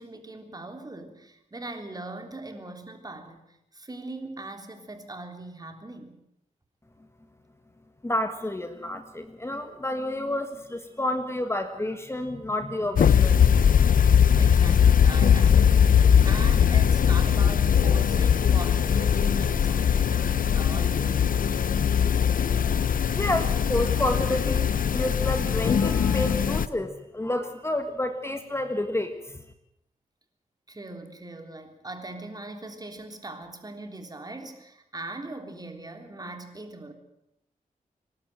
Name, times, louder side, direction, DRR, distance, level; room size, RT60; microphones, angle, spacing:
voice 1, 0.0-6.2 14.4-15.9 16.2-21.3 30.7-36.9, right 2 dB, 25° right, 6 dB, 3.3 m, -40 dB
voice 2, 8.0-13.3 23.1-29.4, left 1 dB, 20° left, 8 dB, 1.6 m, -29 dB
sound 1, 13.0-26.7, left 7 dB, 75° left, 0.8 m, -20 dB
25.5 x 12.0 x 9.1 m, 0.81 s
cardioid pair, 80°, 14 cm